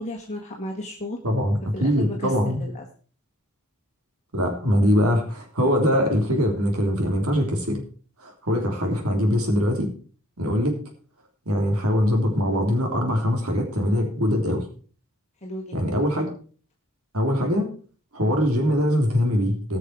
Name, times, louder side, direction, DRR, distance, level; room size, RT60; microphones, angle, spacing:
voice 1, 0.0-1.2 1.7-2.8 15.4-15.7, left 1 dB, 30° left, 0 dB, 1.6 m, -34 dB
voice 2, 1.2-2.6 4.3-7.8 8.2-9.9 10.4-10.8 11.4-14.6 15.7-16.3 17.1-17.7 18.1-19.8, equal, 70° right, 3 dB, 3.3 m, -22 dB
18.5 x 6.6 x 4.7 m, 0.40 s
head